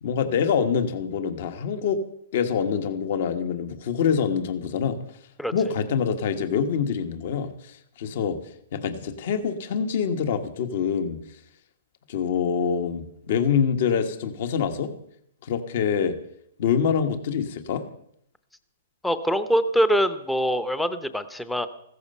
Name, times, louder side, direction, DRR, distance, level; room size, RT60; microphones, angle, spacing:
voice 1, 0.0-2.0 2.3-5.0 5.5-8.4 8.7-11.2 12.1-14.9 15.4-16.2 16.6-17.8, left 7 dB, 50° left, 9 dB, 1.4 m, -25 dB
voice 2, 19.0-21.7, equal, 5° left, 12 dB, 0.7 m, -23 dB
15.5 x 13.5 x 5.5 m, 0.72 s
hypercardioid pair, 160°, 0 cm